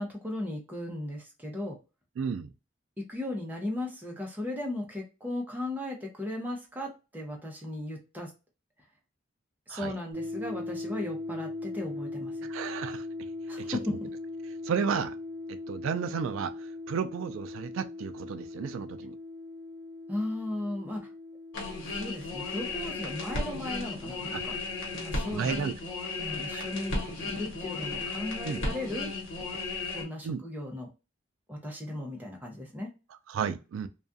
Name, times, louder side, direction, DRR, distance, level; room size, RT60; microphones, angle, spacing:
voice 1, 0.0-1.8 3.0-8.3 9.7-12.5 13.5-14.1 20.1-21.1 21.8-24.6 24.9-25.7 26.2-29.1 29.9-30.9 31.5-32.9, left 1 dB, 10° right, 0.6 m, -36 dB
voice 2, 2.2-2.5 9.7-9.9 12.4-13.0 13.6-14.0 14.6-15.2 15.5-19.1 24.3-24.4 25.3-25.7 26.5-26.7 28.4-28.6 30.2-30.4 33.3-33.9, right 6 dB, 85° right, 0.3 m, -33 dB
sound 1, 10.1-25.6, left 2 dB, 40° right, 1.2 m, -40 dB
sound 2, 21.5-30.0, left 3 dB, 70° left, 1.0 m, -35 dB
2.3 x 2.3 x 2.5 m
head